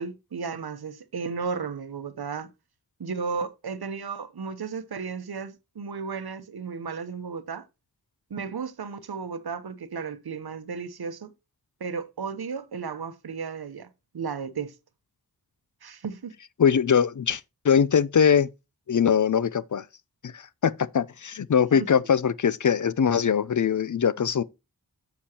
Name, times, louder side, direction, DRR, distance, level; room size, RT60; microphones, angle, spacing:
voice 1, 0.0-2.5 3.0-7.7 8.3-11.3 11.8-13.9 14.1-14.7 15.8-16.4 21.7-21.9, right 5 dB, 75° right, 0.9 m, -34 dB
voice 2, 16.6-18.5 18.9-19.8 20.3-24.4, left 7 dB, 50° left, 0.5 m, -22 dB
9.6 x 7.1 x 2.9 m
wide cardioid pair, 90°, 38 cm